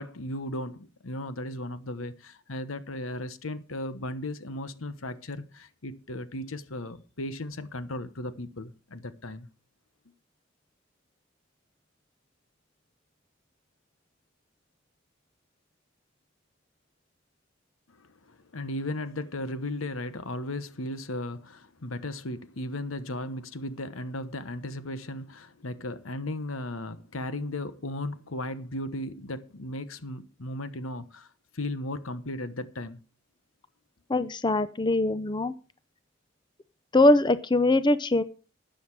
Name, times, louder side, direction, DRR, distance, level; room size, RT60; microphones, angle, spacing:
voice 1, 0.0-9.5 17.9-31.3 31.5-33.0 34.2-34.3, left 1 dB, 90° left, 1.2 m, -36 dB
voice 2, 34.1-35.5 36.9-38.2, left 2 dB, 20° left, 0.6 m, -22 dB
13.0 x 9.1 x 4.7 m
head